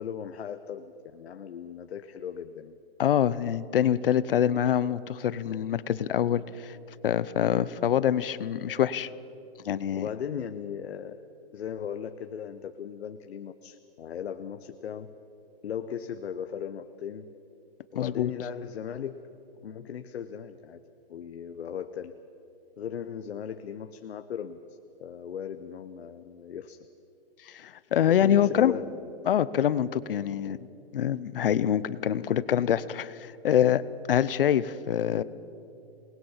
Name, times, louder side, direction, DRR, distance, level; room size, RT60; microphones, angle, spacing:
voice 1, 0.0-2.8 9.9-11.2 11.5-15.1 15.6-17.3 17.9-19.2 19.6-20.8 21.1-22.2 22.8-26.8 28.2-29.1, left 8 dB, 85° left, 9 dB, 1.0 m, -37 dB
voice 2, 3.0-6.8 7.0-9.1 9.6-10.1 17.9-18.3 27.5-28.7 29.3-30.6 30.9-33.8 34.1-35.2, left 10 dB, 60° left, 17 dB, 0.7 m, -25 dB
26.5 x 20.0 x 5.6 m, 2.9 s
hypercardioid pair, 170°, 31 cm